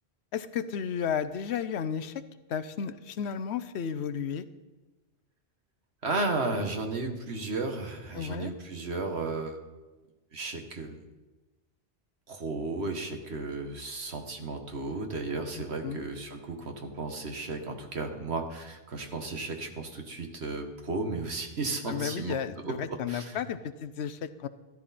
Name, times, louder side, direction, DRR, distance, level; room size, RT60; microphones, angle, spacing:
voice 1, 0.3-2.1 2.5-4.4 8.1-8.5 15.8-16.0 21.9-24.5, left 7 dB, 85° left, 13 dB, 1.0 m, -33 dB
voice 2, 6.0-9.6 10.3-11.0 12.3-23.4, right 3 dB, 80° right, 4 dB, 1.8 m, -34 dB
13.5 x 13.0 x 4.3 m, 1.2 s
omnidirectional pair, 1.1 m